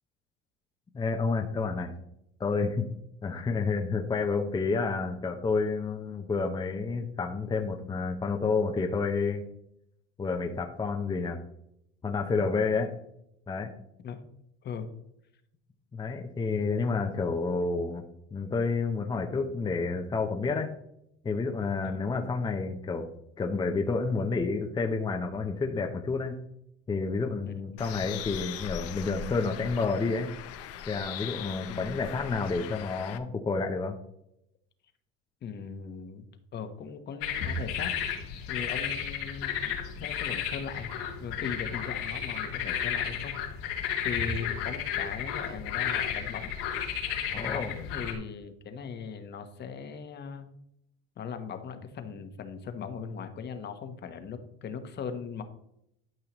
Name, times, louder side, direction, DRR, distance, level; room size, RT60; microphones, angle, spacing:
voice 1, 0.9-1.9 2.4-2.9 3.2-9.4 10.2-11.4 12.0-12.9 13.5-13.7 15.9-18.0 18.3-20.7 21.2-23.1 23.4-26.4 26.9-30.3 30.9-34.0 47.3-47.7, left 4 dB, 15° left, 2 dB, 0.7 m, -29 dB
voice 2, 27.4-27.8 31.7-31.9 35.4-36.2 36.5-37.9 38.5-40.9 41.2-43.4 44.0-46.5 47.3-50.5 51.2-55.4, left 6 dB, 35° left, 8 dB, 1.1 m, -39 dB
Bird, 27.8-33.2, left 9 dB, 55° left, 0.8 m, -40 dB
sound 1, 37.2-48.1, left 8 dB, 85° left, 2.6 m, -33 dB
12.0 x 5.6 x 3.0 m, 0.77 s
supercardioid pair, 120°, 29 cm